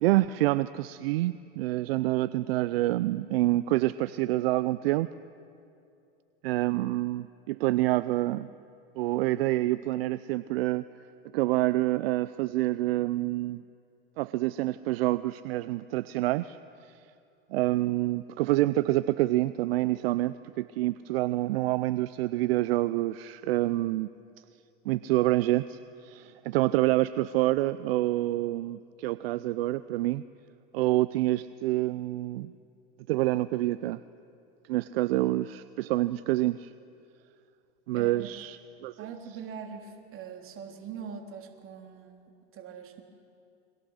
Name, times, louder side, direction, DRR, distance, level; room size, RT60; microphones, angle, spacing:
voice 1, 0.0-5.1 6.4-8.5 9.0-10.8 11.3-13.6 14.2-16.6 17.5-24.1 24.9-30.2 30.7-32.5 33.1-34.0 34.7-36.7 37.9-39.0, right 17 dB, 75° right, 16 dB, 0.6 m, -27 dB
voice 2, 37.9-38.3 39.0-43.0, right 6 dB, 45° right, 3 dB, 3.3 m, -42 dB
29.0 x 23.0 x 6.5 m, 2.5 s
hypercardioid pair, 90°, 30 cm